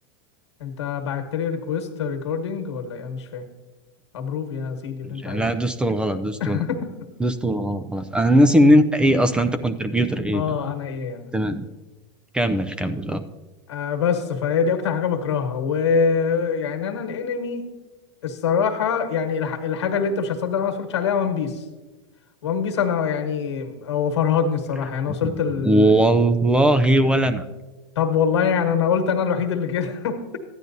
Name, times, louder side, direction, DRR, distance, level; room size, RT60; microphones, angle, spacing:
voice 1, 0.6-3.4 4.1-5.4 6.4-6.9 10.3-11.3 13.7-17.7 18.2-21.6 22.4-26.0 27.9-30.4, left 6 dB, 90° left, 5 dB, 1.4 m, -24 dB
voice 2, 5.0-6.6 7.2-10.6 11.3-11.7 12.3-13.2 25.2-25.3 25.6-27.4, right 1 dB, 5° right, 10 dB, 0.4 m, -19 dB
13.5 x 10.0 x 2.7 m, 1.2 s
supercardioid pair, 125°, 14 cm